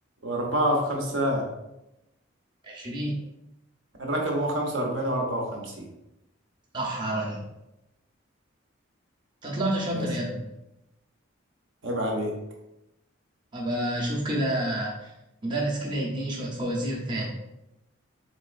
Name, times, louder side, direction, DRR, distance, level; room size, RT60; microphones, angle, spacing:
voice 1, 0.2-1.5 4.0-5.9 9.9-10.1 11.8-12.3, equal, 65° right, 0 dB, 0.8 m, -27 dB
voice 2, 2.6-3.2 6.7-7.4 9.4-10.4 13.5-15.1 15.4-17.3, right 1 dB, 20° right, -4 dB, 0.7 m, -29 dB
4.0 x 3.0 x 2.4 m, 0.91 s
head